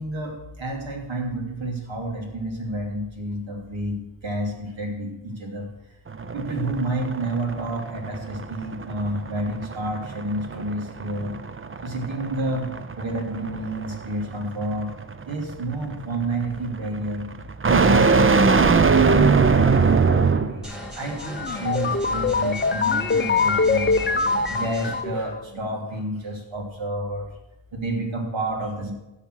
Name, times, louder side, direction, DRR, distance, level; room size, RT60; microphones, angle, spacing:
voice 1, 0.0-5.7 6.3-11.4 11.8-12.7 12.9-14.9 15.3-17.3 17.7-27.3 27.7-28.9, right 1 dB, 70° right, 1 dB, 3.2 m, -30 dB
sound 1, 6.1-20.6, right 4 dB, 25° right, 0.7 m, -22 dB
sound 2, 20.6-25.0, equal, ahead, 2.3 m, -38 dB
sound 3, 21.2-25.4, left 4 dB, 20° left, 0.7 m, -23 dB
15.5 x 5.9 x 6.4 m, 0.96 s
wide cardioid pair, 85°, 48 cm